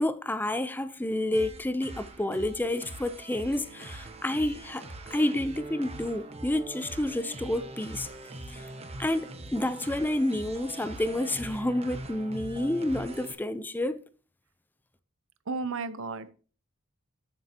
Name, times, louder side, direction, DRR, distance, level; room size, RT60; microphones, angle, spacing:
voice 1, 0.0-4.8 5.1-8.1 8.5-8.7 9.0-14.0, left 1 dB, 10° left, 0.5 m, -29 dB
sound 1, 1.3-13.3, right 2 dB, 30° right, 1.2 m, -42 dB
voice 2, 15.5-16.3, right 4 dB, 65° right, 0.8 m, -33 dB
13.0 x 7.5 x 2.8 m
head